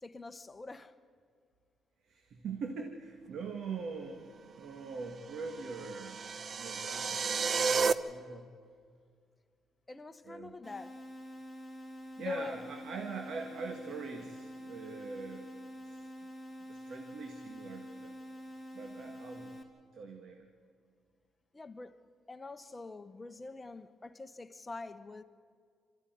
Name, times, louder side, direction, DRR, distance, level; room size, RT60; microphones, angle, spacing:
voice 1, 0.0-0.9 9.9-11.0 12.2-12.6 21.5-25.2, left 3 dB, 25° left, 1.1 m, -44 dB
voice 2, 2.1-4.3 4.6-8.5 10.2-10.5 12.2-15.5 15.9-16.0 16.7-18.2 18.7-19.6 19.9-20.5, right 4 dB, 65° right, 1.7 m, -43 dB
sound 1, 5.4-7.9, right 5 dB, 50° right, 0.7 m, -32 dB
sound 2, 10.6-19.6, equal, 5° right, 3.3 m, -47 dB
25.5 x 14.0 x 9.5 m
cardioid pair, 90°, 0 cm